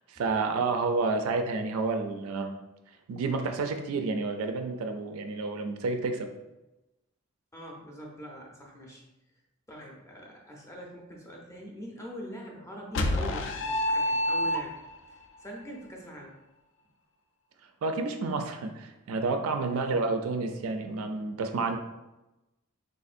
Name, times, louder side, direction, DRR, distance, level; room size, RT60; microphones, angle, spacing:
voice 1, 0.1-2.5 3.1-6.3 17.8-21.8, right 3 dB, 70° right, 5 dB, 0.3 m, -30 dB
voice 2, 7.5-9.0 9.7-14.7 15.1-16.3 19.7-20.0, equal, 15° left, -2 dB, 0.6 m, -43 dB
sound 1, 12.9-15.0, left 1 dB, 60° left, 0.3 m, -27 dB
3.5 x 2.6 x 2.4 m, 0.99 s
head